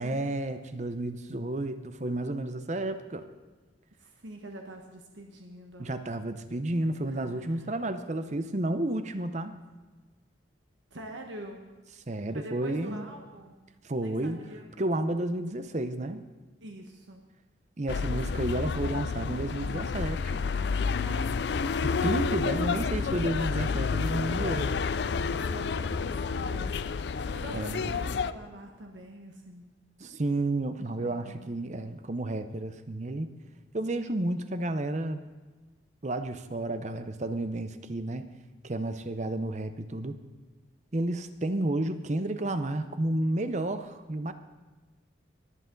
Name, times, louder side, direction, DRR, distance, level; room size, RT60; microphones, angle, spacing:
voice 1, 0.0-3.2 5.8-9.5 12.1-13.0 13.8-14.5 14.8-16.2 17.8-20.4 21.8-24.7 27.5-27.9 30.0-33.3 33.7-35.2 36.0-38.2 38.6-40.2 40.9-44.3, right 1 dB, 40° right, 10 dB, 0.7 m, -31 dB
voice 2, 4.0-6.2 7.0-7.7 10.9-11.7 12.3-13.6 14.0-14.7 16.6-17.2 20.9-21.3 25.4-26.8 27.3-29.6 30.9-31.5, right 1 dB, 80° right, 2 dB, 1.4 m, -45 dB
sound 1, 17.9-28.3, left 5 dB, 60° left, 0.4 m, -30 dB
22.0 x 8.1 x 3.9 m, 1.3 s
head